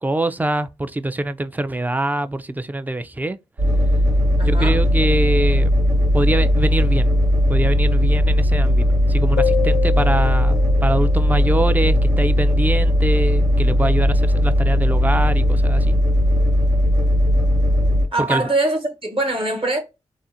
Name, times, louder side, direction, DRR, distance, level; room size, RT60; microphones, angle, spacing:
voice 1, 0.0-3.4 4.4-5.7 6.1-7.1 7.5-16.0 18.3-18.4, right 2 dB, 15° right, 0.3 m, -24 dB
sound 1, 3.6-18.1, equal, 85° right, 1.0 m, -17 dB
voice 2, 4.4-4.8 18.1-19.8, right 2 dB, 50° right, 1.0 m, -22 dB
sound 2, 9.4-12.7, left 10 dB, 60° left, 0.4 m, -29 dB
2.5 x 2.0 x 2.6 m
cardioid pair, 45°, 12 cm